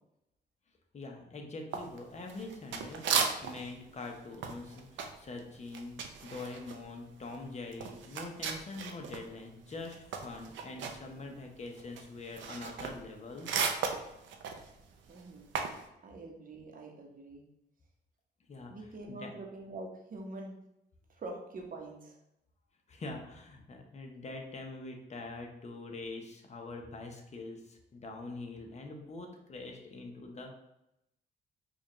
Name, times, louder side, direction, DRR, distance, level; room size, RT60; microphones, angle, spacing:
voice 1, 0.9-13.5 18.5-18.7 19.1-19.3 22.9-30.5, left 2 dB, 35° left, 2 dB, 0.8 m, -44 dB
sound 1, 1.7-3.7 4.0-9.3 9.6-15.8, right 6 dB, 80° right, 0.5 m, -36 dB
voice 2, 15.1-15.5 16.0-17.4 18.7-20.5 21.1-22.2, right 2 dB, 45° right, 0 dB, 0.9 m, -45 dB
4.7 x 2.4 x 3.0 m, 0.85 s
cardioid pair, 100°, 19 cm